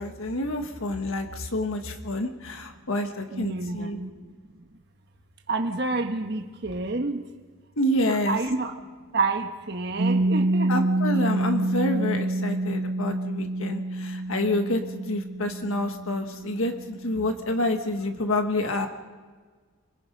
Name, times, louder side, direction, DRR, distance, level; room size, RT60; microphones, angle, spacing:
voice 1, 0.0-4.0 7.8-8.4 10.7-18.9, left 1 dB, 70° left, 5 dB, 1.6 m, -28 dB
voice 2, 3.3-4.3 5.5-7.3 8.1-8.7 9.1-10.8, right 3 dB, 50° right, 4 dB, 1.4 m, -29 dB
Piano, 10.0-17.3, right 2 dB, 80° right, 0.7 m, -27 dB
26.0 x 22.0 x 5.3 m, 1.5 s
head